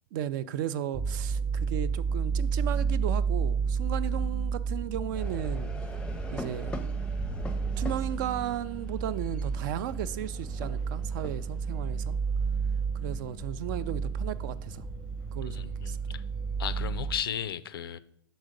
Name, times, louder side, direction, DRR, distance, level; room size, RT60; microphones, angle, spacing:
voice 1, 0.1-5.7 6.3-6.8 7.8-12.2 13.0-14.8 15.3-16.0, right 10 dB, 60° right, 0.4 m, -35 dB
sound 1, 0.9-17.2, right 5 dB, 35° right, 0.9 m, -31 dB
train yokosuka, 5.1-17.2, left 2 dB, 10° left, 0.5 m, -44 dB
voice 2, 15.4-16.2 16.6-18.0, left 9 dB, 80° left, 0.4 m, -35 dB
6.2 x 3.9 x 5.1 m
hypercardioid pair, 100°, 12 cm